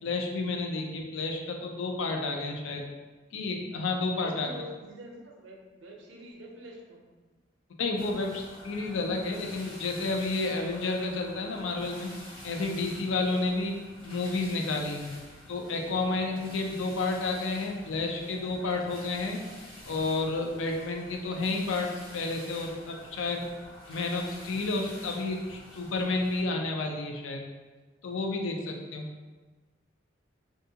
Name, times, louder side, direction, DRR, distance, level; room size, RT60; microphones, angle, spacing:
voice 1, 0.0-2.8 3.3-4.5 7.8-12.1 12.4-13.8 14.0-15.1 15.5-19.4 19.9-23.5 23.9-27.4 28.0-29.1, left 3 dB, 80° left, 2 dB, 0.4 m, -31 dB
voice 2, 4.1-7.0 13.3-13.5, equal, 75° right, 0 dB, 0.5 m, -45 dB
sound 1, 8.0-26.4, left 1 dB, 25° left, 1.1 m, -48 dB
2.6 x 2.4 x 2.7 m, 1.3 s
head